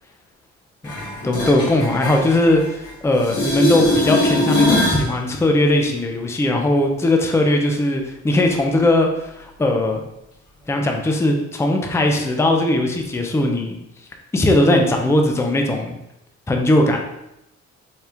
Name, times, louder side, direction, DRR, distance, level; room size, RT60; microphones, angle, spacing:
sound 1, 0.8-2.9 3.2-5.1 10.8-10.9, left 1 dB, 75° left, 1.4 m, -21 dB
voice 1, 1.2-10.0 10.7-13.8 14.3-16.0 16.5-17.0, left 1 dB, 10° left, 3 dB, 0.5 m, -19 dB
4.4 x 2.3 x 3.4 m, 0.87 s
cardioid pair, 90°, 30 cm